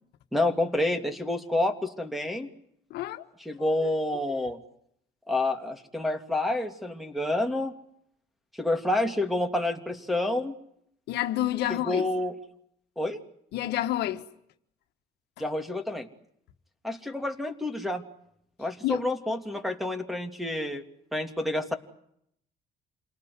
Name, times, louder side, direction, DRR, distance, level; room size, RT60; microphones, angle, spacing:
voice 1, 0.3-2.5 3.4-4.6 5.3-7.7 8.5-10.5 11.7-12.3 13.0-13.2 15.4-16.1 16.8-18.0 18.6-20.8 21.1-21.8, left 1 dB, ahead, 3.0 m, -28 dB
voice 2, 2.9-3.2 3.6-3.9 11.1-12.0 13.5-14.2 18.8-19.0, left 13 dB, 80° left, 1.7 m, -29 dB
28.0 x 19.0 x 9.7 m
cardioid pair, 110°, 17 cm